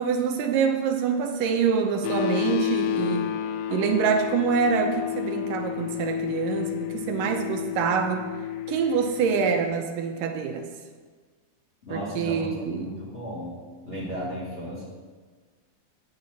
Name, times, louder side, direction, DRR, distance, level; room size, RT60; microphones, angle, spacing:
voice 1, 0.0-3.3 3.7-8.3 8.7-10.7 11.9-13.0, right 6 dB, 85° right, 5 dB, 2.3 m, -25 dB
sound 1, 2.0-9.6, left 12 dB, 90° left, 2.3 m, -31 dB
voice 2, 11.9-13.6 13.8-14.8, equal, 25° left, -9 dB, 2.0 m, -35 dB
9.7 x 8.9 x 4.1 m, 1.5 s
omnidirectional pair, 3.9 m